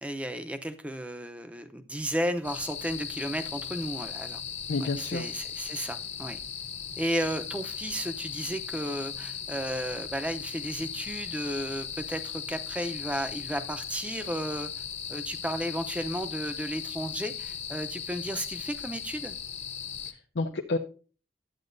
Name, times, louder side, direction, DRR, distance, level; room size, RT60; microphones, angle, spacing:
voice 1, 0.0-4.4 4.8-6.4 7.0-14.7 15.1-19.4, equal, 10° right, 0.7 m, -33 dB
sound 1, 2.4-20.1, left 7 dB, 40° left, 0.8 m, -38 dB
voice 2, 4.7-5.3 20.0-20.8, left 3 dB, 90° left, 0.6 m, -30 dB
12.0 x 8.6 x 2.6 m
head